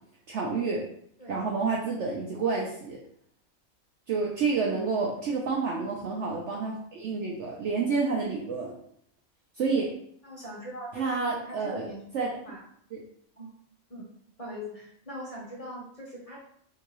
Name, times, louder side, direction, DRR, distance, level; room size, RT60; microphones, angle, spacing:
voice 1, 0.3-0.8 1.3-3.0 4.1-8.7 9.6-9.9 10.9-11.9 12.1-12.3 12.9-13.0, right 4 dB, 65° right, -2 dB, 0.8 m, -29 dB
voice 2, 10.2-12.0 12.4-12.6 13.4-13.5 13.9-14.0 14.4-16.4, equal, 40° left, -3 dB, 0.5 m, -41 dB
3.8 x 2.6 x 2.9 m, 0.66 s
omnidirectional pair, 1.5 m